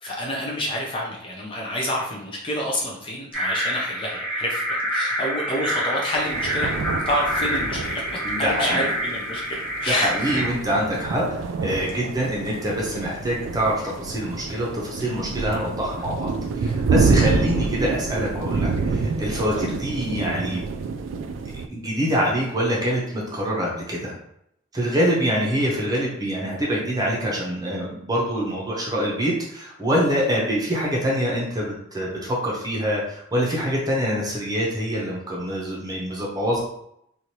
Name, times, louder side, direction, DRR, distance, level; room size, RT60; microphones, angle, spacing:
voice 1, 0.0-10.3 17.8-17.9 19.5-19.7, equal, 25° left, -2 dB, 0.5 m, -28 dB
sound 1, 3.3-10.5, equal, ahead, 1.1 m, -27 dB
sound 2, 6.1-21.7, right 4 dB, 85° right, 0.3 m, -27 dB
voice 2, 8.2-8.9 9.9-20.6 21.7-24.1 24.7-36.6, equal, 20° right, -4 dB, 0.8 m, -25 dB
3.1 x 2.5 x 2.8 m, 0.76 s
head